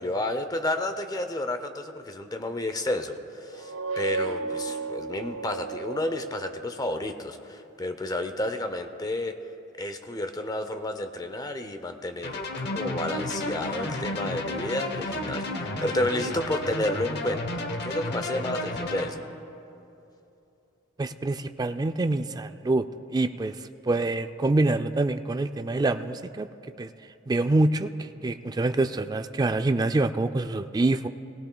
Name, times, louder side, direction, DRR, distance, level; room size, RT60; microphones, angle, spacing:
voice 1, 0.0-9.4 9.8-19.2, left 1 dB, 20° left, 8 dB, 0.6 m, -31 dB
sound 1, 3.5-7.0, right 4 dB, 70° right, 0.5 m, -34 dB
sound 2, 12.2-19.1, left 1 dB, 55° left, 1.0 m, -32 dB
voice 2, 21.0-22.8 23.1-23.6 23.9-26.5 26.8-26.9 27.3-31.1, right 2 dB, 20° right, 9 dB, 0.3 m, -25 dB
18.0 x 18.0 x 2.3 m, 2.8 s
head